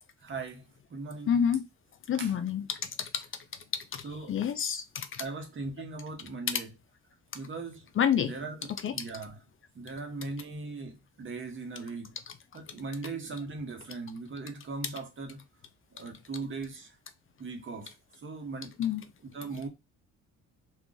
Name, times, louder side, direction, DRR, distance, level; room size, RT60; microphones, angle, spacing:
voice 1, 0.2-0.6 0.9-1.4 2.2-2.3 4.0-4.4 5.2-6.7 7.3-7.9 8.2-9.4 9.7-12.2 12.5-15.4 15.9-17.0 17.4-18.7 19.2-19.7, right 3 dB, 40° right, 1.0 m, -39 dB
voice 2, 1.3-1.6 2.1-3.3 3.9-5.2 8.0-8.3 8.8-8.9 18.8-19.0, left 8 dB, 45° left, 0.4 m, -28 dB
2.4 x 2.3 x 3.8 m
cardioid pair, 90°, 30 cm